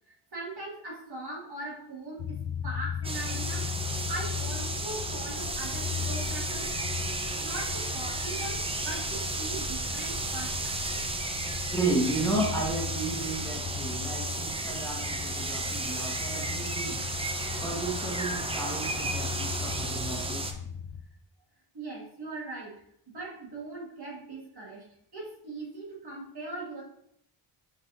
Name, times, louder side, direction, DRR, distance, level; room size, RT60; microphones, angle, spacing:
voice 1, 0.1-6.7 7.4-11.0 21.7-24.9 25.1-26.8, right 2 dB, 50° right, -3 dB, 1.6 m, -40 dB
sound 1, 2.2-21.0, left 7 dB, 60° left, 0.5 m, -38 dB
sound 2, 3.0-20.5, right 2 dB, 15° right, 0.4 m, -33 dB
voice 2, 11.7-17.0 17.6-20.4, right 2 dB, 5° left, -4 dB, 1.1 m, -33 dB
5.0 x 4.0 x 2.5 m, 0.71 s
cardioid pair, 85°, 50 cm